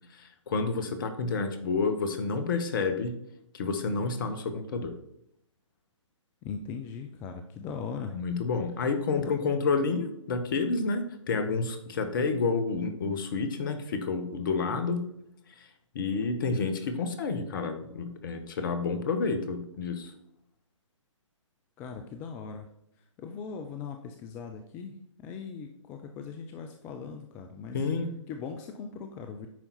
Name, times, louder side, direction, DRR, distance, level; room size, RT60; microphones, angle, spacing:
voice 1, 0.1-3.1 3.5-4.9 8.1-15.0 15.6-15.7 15.9-20.1 27.7-28.1, left 4 dB, 40° left, 8 dB, 1.2 m, -29 dB
voice 2, 6.4-8.2 9.2-9.3 21.8-22.7 23.2-27.8 28.3-29.5, left 6 dB, 10° left, 5 dB, 0.4 m, -39 dB
9.0 x 5.6 x 4.1 m, 0.74 s
figure-of-eight pair, 130°, 16 cm